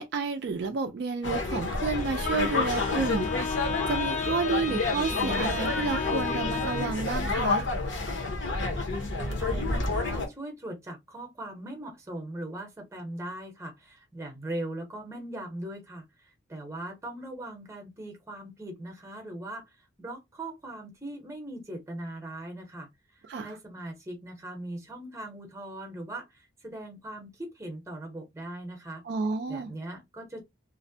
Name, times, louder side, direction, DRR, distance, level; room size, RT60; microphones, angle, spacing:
voice 1, 0.0-7.7 23.2-23.6 29.0-29.7, right 4 dB, 55° right, 0.3 m, -31 dB
sound 1, 1.2-10.3, left 3 dB, 65° left, 0.7 m, -29 dB
Bowed string instrument, 1.8-7.1, left 5 dB, 35° left, 0.4 m, -34 dB
voice 2, 9.2-19.6 20.0-22.9 23.4-29.0 29.5-30.4, right 1 dB, 15° right, 0.7 m, -40 dB
2.5 x 2.1 x 2.6 m
head